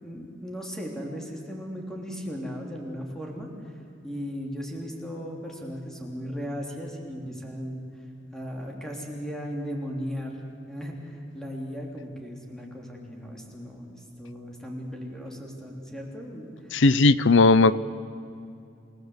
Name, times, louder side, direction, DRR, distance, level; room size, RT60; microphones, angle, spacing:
voice 1, 0.0-3.7 4.0-7.8 8.3-10.4 10.7-16.8, equal, 5° left, 0 dB, 3.4 m, -36 dB
voice 2, 16.7-17.8, left 3 dB, 70° left, 17 dB, 0.6 m, -17 dB
28.0 x 18.0 x 8.1 m, 2.5 s
head